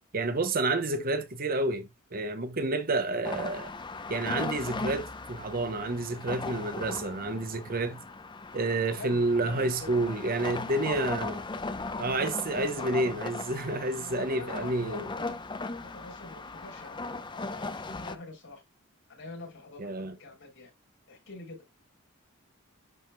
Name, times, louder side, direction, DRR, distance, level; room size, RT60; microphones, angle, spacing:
voice 1, 0.1-3.7 4.1-8.0 8.5-11.4 12.0-15.1 19.8-20.1, right 2 dB, 45° right, 0.9 m, -29 dB
sound 1, 3.2-18.2, left 3 dB, 20° left, 0.6 m, -38 dB
voice 2, 8.9-10.4 12.5-13.0 13.9-18.6 19.1-20.7 21.1-21.6, left 2 dB, 60° left, 5.8 m, -45 dB
11.0 x 4.9 x 2.2 m
head